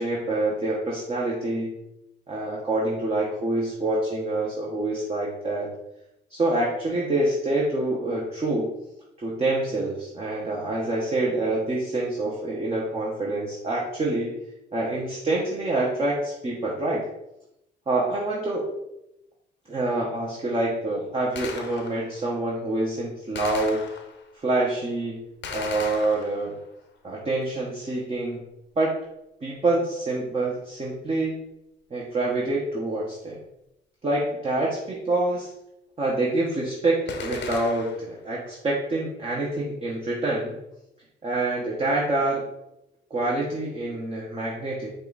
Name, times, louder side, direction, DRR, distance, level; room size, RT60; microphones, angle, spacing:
voice 1, 0.0-1.7 2.3-5.7 6.3-8.7 9.2-14.4 14.7-17.0 17.9-18.7 19.7-23.8 24.3-25.3 25.5-26.6 27.0-28.4 28.8-28.9 29.4-31.4 31.9-33.4 34.0-35.5 36.0-40.5 41.2-42.4 43.1-44.9, right 2 dB, 30° right, -4 dB, 1.1 m, -26 dB
Gunshot gunfire, 21.4-22.2 23.4-24.3 25.4-26.7 37.1-38.2, left 5 dB, 65° left, 0.8 m, -37 dB
5.3 x 2.5 x 4.0 m, 0.86 s
cardioid pair, 90°, 20 cm